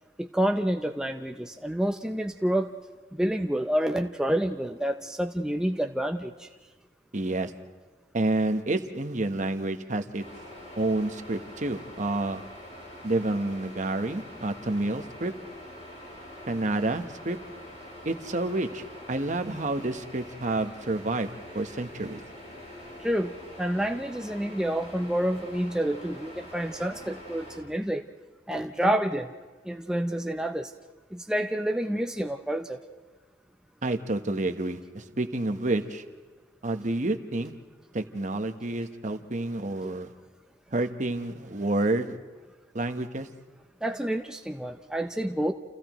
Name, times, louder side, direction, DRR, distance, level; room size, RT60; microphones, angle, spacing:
voice 1, 0.2-2.7 3.1-6.5 23.0-28.0 28.5-29.4 29.7-30.7 31.1-32.8 39.8-39.9 43.8-45.5, right 1 dB, 5° right, 4 dB, 0.5 m, -28 dB
voice 2, 7.1-7.5 8.1-10.2 10.8-12.4 13.0-15.3 16.5-17.4 18.0-21.3 21.5-22.2 33.8-36.0 36.6-37.5 37.9-40.1 40.7-42.2 42.7-43.3, right 2 dB, 45° right, 7 dB, 1.0 m, -29 dB
sound 1, 10.2-27.6, left 1 dB, 45° left, 6.9 m, -45 dB
29.5 x 29.0 x 3.1 m, 1.3 s
head